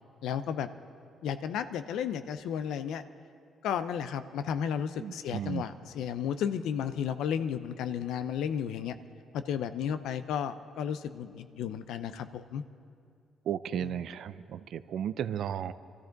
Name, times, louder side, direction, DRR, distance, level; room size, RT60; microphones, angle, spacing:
voice 1, 0.2-0.7 1.2-3.0 3.6-8.9 9.3-12.6 13.8-14.0, left 8 dB, 85° left, 11 dB, 0.6 m, -33 dB
voice 2, 5.0-5.6 13.5-15.7, right 9 dB, 70° right, 13 dB, 0.5 m, -34 dB
24.5 x 14.0 x 4.0 m, 2.3 s
cardioid pair, 90°, 0 cm